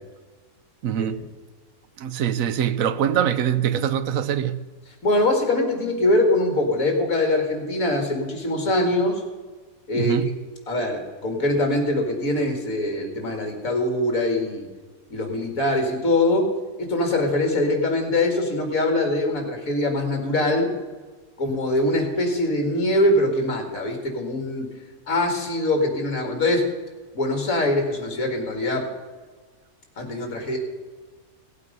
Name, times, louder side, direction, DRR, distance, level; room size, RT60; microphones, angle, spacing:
voice 1, 0.8-1.2 2.0-4.6 9.9-10.3, right 9 dB, 65° right, 1.0 m, -23 dB
voice 2, 5.0-9.2 9.9-10.1 10.7-14.7 15.1-16.5 16.8-20.7 21.4-24.7 25.1-26.7 27.1-28.9 30.0-30.6, left 1 dB, 60° left, 2.5 m, -23 dB
16.5 x 8.3 x 5.3 m
omnidirectional pair, 1.6 m